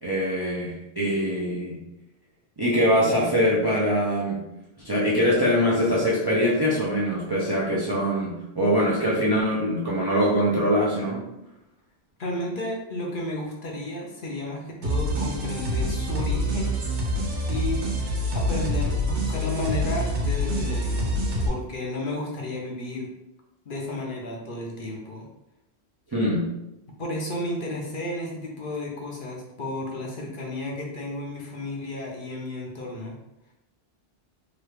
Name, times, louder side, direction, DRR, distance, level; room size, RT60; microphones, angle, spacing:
voice 1, 0.0-1.8 2.6-4.4 4.8-11.2 26.1-26.5, equal, 35° right, -6 dB, 0.4 m, -23 dB
voice 2, 12.2-16.8 17.5-17.9 18.3-21.2 21.4-23.1 23.7-25.2 27.0-33.2, left 1 dB, 55° left, -1 dB, 0.7 m, -33 dB
sound 1, 14.8-21.5, equal, 85° right, 1.1 m, -26 dB
2.9 x 2.3 x 3.3 m, 0.89 s
omnidirectional pair, 1.1 m